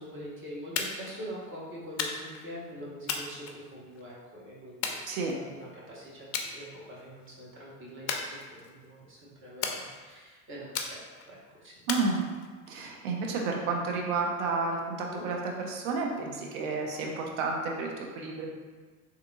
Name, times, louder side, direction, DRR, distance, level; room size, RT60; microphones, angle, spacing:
voice 1, 0.0-11.7 15.1-15.3, equal, 25° right, -5 dB, 1.2 m, -44 dB
sound 1, 0.8-1.2 2.0-2.5 3.1-4.0 4.8-5.6 6.3-6.5 6.9-7.3 8.1-8.9 9.6-10.2 10.7-11.3 11.9-12.7, left 5 dB, 40° left, 0.4 m, -35 dB
voice 2, 11.9-12.3 12.7-18.5, right 4 dB, 65° right, 0 dB, 0.8 m, -31 dB
3.6 x 2.9 x 2.3 m, 1.4 s
hypercardioid pair, 75°, 43 cm